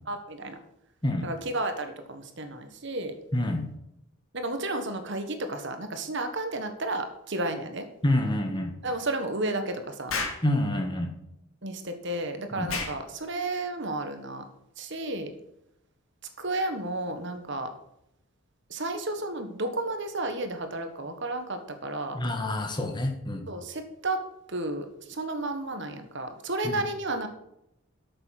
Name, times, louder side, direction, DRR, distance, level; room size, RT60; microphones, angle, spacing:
voice 1, 0.1-0.6 1.2-3.1 4.3-7.9 8.8-10.2 11.6-14.4 14.8-15.3 16.4-17.7 18.7-22.2 23.5-24.2 24.5-27.3, right 2 dB, 55° right, 7 dB, 1.5 m, -32 dB
voice 2, 3.3-3.6 8.0-8.7 10.4-11.1 12.5-12.7 22.1-23.4 26.6-26.8, left 1 dB, 20° left, 3 dB, 1.5 m, -27 dB
Explosion, 10.1-10.5 12.7-13.0, left 4 dB, 70° left, 2.6 m, -30 dB
13.0 x 6.9 x 6.0 m, 0.82 s
head